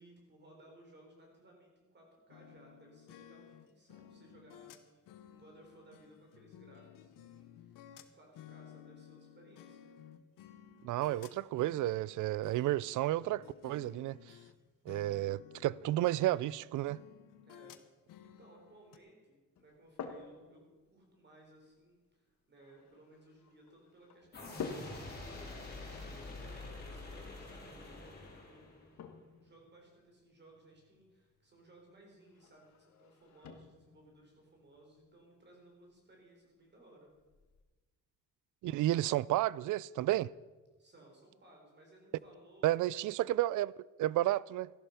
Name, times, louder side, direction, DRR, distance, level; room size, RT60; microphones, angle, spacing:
voice 1, 0.0-9.9 17.5-17.8 18.4-29.0 29.4-37.1 40.8-42.7, right 1 dB, 35° right, 4.0 m, -61 dB
sound 1, 2.3-14.5 14.9-19.0, left 10 dB, 90° left, 1.0 m, -56 dB
voice 2, 10.8-14.3 14.9-17.0 38.6-40.3 42.6-43.7 44.0-44.7, right 15 dB, 70° right, 0.4 m, -32 dB
sound 2, 19.6-37.6, left 5 dB, 60° left, 1.5 m, -52 dB
sound 3, 24.3-29.0, left 2 dB, 30° left, 4.0 m, -46 dB
14.0 x 11.0 x 5.7 m
cardioid pair, 130°, 32 cm